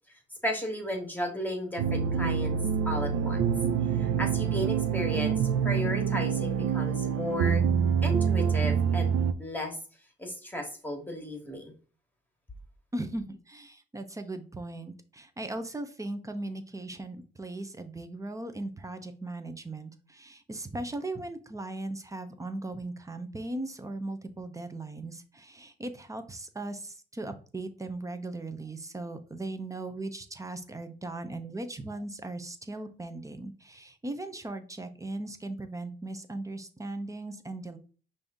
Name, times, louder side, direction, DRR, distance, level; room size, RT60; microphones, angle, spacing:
voice 1, 0.4-2.6 2.8-3.4 3.9-7.6 8.0-9.8 10.2-11.7, left 1 dB, 10° left, 2 dB, 1.4 m, -34 dB
sound 1, 1.8-9.3, right 7 dB, 75° right, 0.5 m, -26 dB
voice 2, 12.9-37.8, right 2 dB, 15° right, 8 dB, 0.6 m, -38 dB
5.4 x 2.6 x 3.5 m, 0.39 s
cardioid pair, 90°, 20 cm